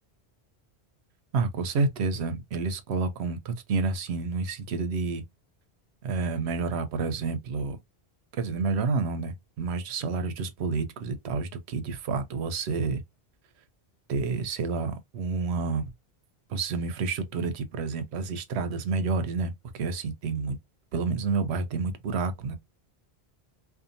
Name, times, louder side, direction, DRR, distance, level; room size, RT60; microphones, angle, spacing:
voice 1, 1.3-5.2 6.0-7.8 8.4-13.0 14.1-15.9 16.5-20.6 20.9-22.6, right 4 dB, 85° right, 0.9 m, -29 dB
2.7 x 2.4 x 2.5 m
omnidirectional pair, 1.1 m